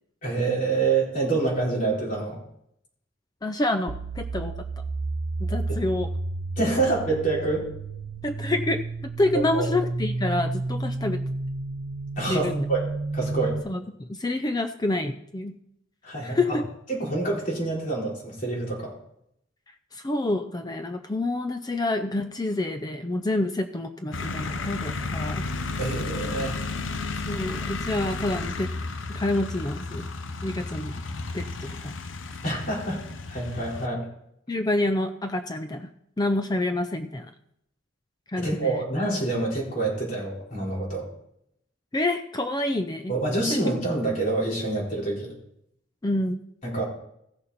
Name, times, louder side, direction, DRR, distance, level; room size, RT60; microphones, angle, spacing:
voice 1, 0.2-2.4 5.7-5.8 6.6-7.6 9.3-9.7 12.2-12.8 13.1-13.6 16.0-16.6 16.9-18.9 25.8-26.6 32.4-34.1 38.4-41.0 43.1-45.3 46.6-46.8, right 3 dB, 45° left, -4 dB, 4.2 m, -27 dB
voice 2, 3.4-4.5 5.4-6.1 8.2-8.8 9.2-11.2 12.3-12.7 13.6-15.6 16.2-16.6 19.9-25.4 27.3-28.7 29.1-30.1 30.4-31.0 31.3-31.9 34.5-35.9 36.2-37.3 38.3-38.8 41.9-43.1 43.5-43.6 46.0-46.4, left 2 dB, 20° left, 8 dB, 0.5 m, -27 dB
sound 1, 3.9-13.6, right 2 dB, 70° right, 0.7 m, -31 dB
sound 2, 24.1-33.9, left 3 dB, 75° left, 0.8 m, -33 dB
15.5 x 6.8 x 4.2 m, 0.74 s
head